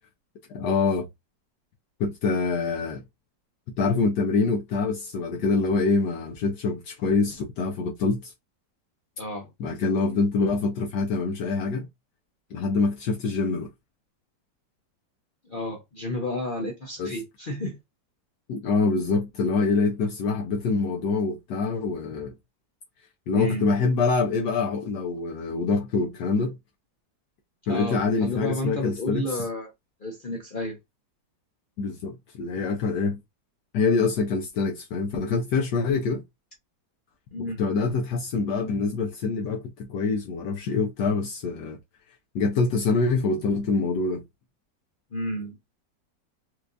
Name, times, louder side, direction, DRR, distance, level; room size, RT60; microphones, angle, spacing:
voice 1, 0.5-1.1 2.0-3.0 3.8-8.3 9.6-11.9 12.5-13.7 17.0-17.1 18.5-22.3 23.3-26.6 27.7-29.3 31.8-33.2 33.7-36.2 37.6-41.8 42.3-44.2, left 4 dB, 70° left, 1.2 m, -25 dB
voice 2, 9.2-9.5 15.5-17.8 23.3-23.7 27.7-29.7 30.0-30.8 37.3-37.6 45.1-45.6, left 1 dB, 55° left, 0.5 m, -31 dB
4.5 x 2.3 x 2.6 m
omnidirectional pair, 2.0 m